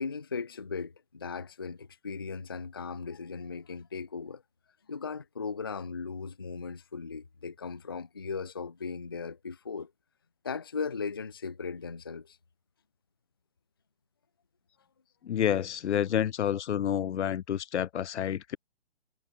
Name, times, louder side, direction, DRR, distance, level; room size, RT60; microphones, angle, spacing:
voice 1, 0.0-4.4 4.9-9.9 10.4-12.4, left 5 dB, 25° left, 0.3 m, -37 dB
voice 2, 15.2-18.6, left 9 dB, 85° left, 0.6 m, -29 dB
hypercardioid pair, 155°, 33 cm